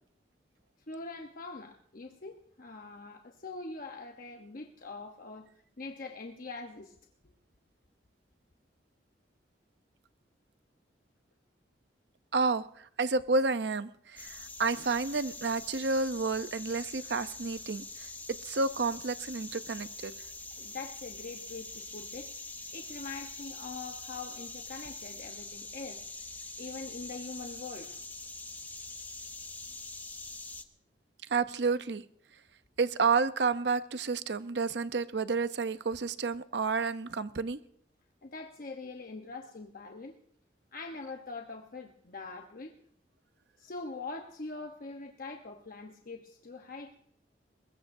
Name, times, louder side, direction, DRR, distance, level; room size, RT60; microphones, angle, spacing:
voice 1, 0.9-5.5 5.8-7.0 20.6-22.3 22.7-26.0 26.6-28.0 38.2-40.2 40.7-42.8 43.6-47.0, left 3 dB, 55° left, 3 dB, 1.0 m, -43 dB
voice 2, 12.3-20.1 31.3-32.0 32.8-37.6, right 4 dB, 70° right, 12 dB, 0.7 m, -30 dB
sound 1, 14.2-30.6, left 3 dB, 10° left, 0.9 m, -44 dB
22.5 x 21.0 x 2.7 m, 0.63 s
head